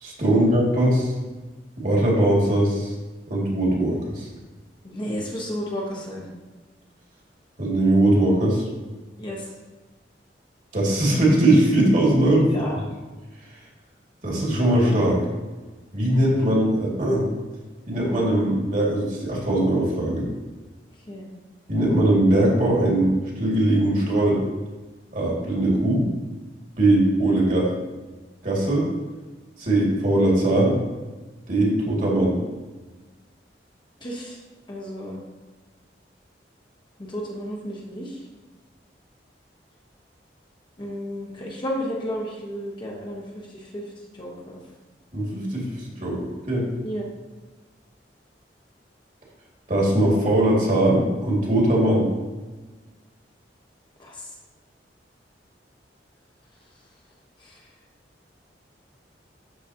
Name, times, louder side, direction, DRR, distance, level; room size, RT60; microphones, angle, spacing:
voice 1, 0.0-1.1 1.8-2.9 3.3-4.3 7.6-8.6 10.7-12.8 14.2-15.2 15.9-17.3 17.9-20.3 21.7-23.1 23.4-24.4 25.1-26.0 26.8-27.7 28.4-28.9 29.6-30.8 31.5-32.4 45.1-45.6 46.0-46.2 46.5-46.7 49.7-52.0, right 1 dB, 45° right, -3 dB, 2.2 m, -20 dB
voice 2, 4.8-6.3 9.2-9.4 12.5-12.8 21.1-21.3 34.0-34.4 34.7-35.2 37.0-38.2 40.8-43.8 44.2-44.6 46.8-47.1 54.0-54.2 57.4-57.6, equal, 25° left, -2 dB, 1.1 m, -32 dB
12.0 x 4.1 x 2.8 m, 1.2 s
head